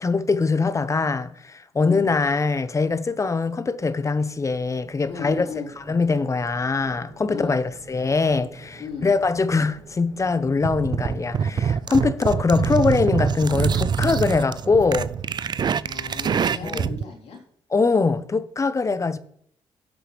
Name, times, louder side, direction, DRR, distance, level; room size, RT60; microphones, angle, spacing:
voice 1, 0.0-5.5 5.9-15.1 16.6-16.9 17.7-19.2, left 4 dB, 30° left, 0.8 m, -22 dB
voice 2, 1.8-2.1 5.0-5.7 7.3-7.6 8.8-9.1 12.1-12.2 15.8-17.4, left 5 dB, 75° left, 3.6 m, -35 dB
sound 1, 3.4-16.9, right 3 dB, 75° right, 2.0 m, -47 dB
sound 2, 10.6-17.0, right 7 dB, 40° right, 0.3 m, -25 dB
16.0 x 6.2 x 3.3 m
supercardioid pair, 65°, 11 cm